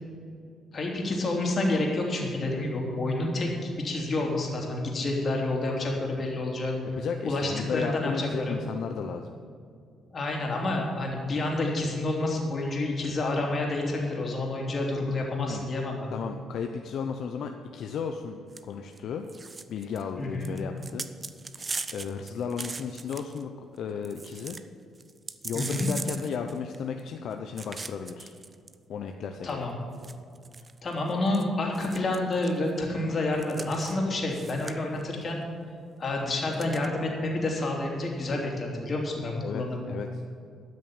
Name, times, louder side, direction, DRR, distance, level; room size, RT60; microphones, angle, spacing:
voice 1, 0.7-6.7 7.2-8.6 10.1-16.1 20.2-20.5 25.5-25.9 29.4-29.7 30.8-35.4 36.0-39.8, left 2 dB, 45° left, 0 dB, 3.1 m, -29 dB
voice 2, 7.0-9.3 15.3-15.7 16.1-19.3 19.7-21.0 21.9-24.6 25.4-28.3 28.9-29.7 39.4-40.2, left 6 dB, 70° left, 5 dB, 0.7 m, -34 dB
sound 1, 18.5-18.6 18.9-19.0 19.3-20.0 20.4-23.4 23.8-23.9 24.0-24.6 25.0-27.0 27.6-28.7 29.5-29.6 30.0-31.4 31.7-32.6 33.4-34.0 34.3-35.0 36.5-36.9, right 4 dB, 30° right, 0.6 m, -39 dB
13.0 x 6.3 x 8.9 m, 2.4 s
cardioid pair, 90°, 0 cm